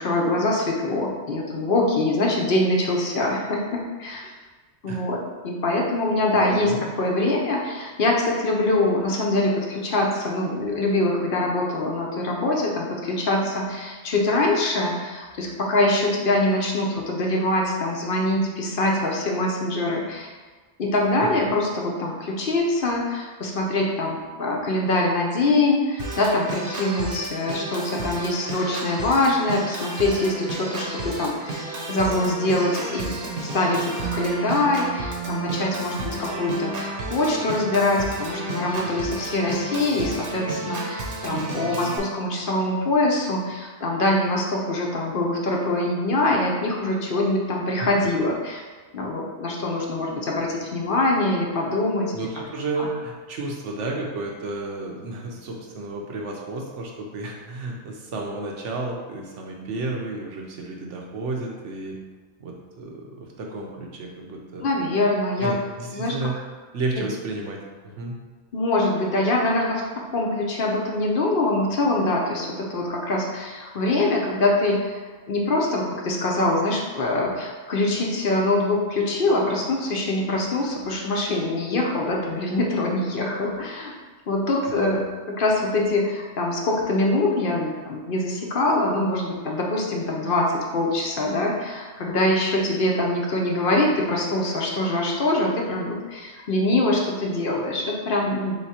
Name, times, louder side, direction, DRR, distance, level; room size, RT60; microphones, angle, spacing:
voice 1, 0.0-4.3 4.8-6.7 7.0-20.3 20.8-48.6 48.9-52.1 52.8-52.9 64.6-65.6 65.9-66.2 67.0-67.1 68.5-69.8 70.1-75.0 75.3-83.9 84.3-98.6, left 2 dB, 55° left, -1 dB, 0.8 m, -24 dB
voice 2, 6.3-6.9 21.2-21.5 48.0-48.1 52.1-62.0 62.4-64.7 65.4-66.4 66.7-68.2 84.7-85.0, right 2 dB, 90° right, 0 dB, 1.1 m, -32 dB
Organ, 26.0-42.0, right 2 dB, 60° right, 0.9 m, -32 dB
3.6 x 3.1 x 4.1 m, 1.4 s
omnidirectional pair, 1.2 m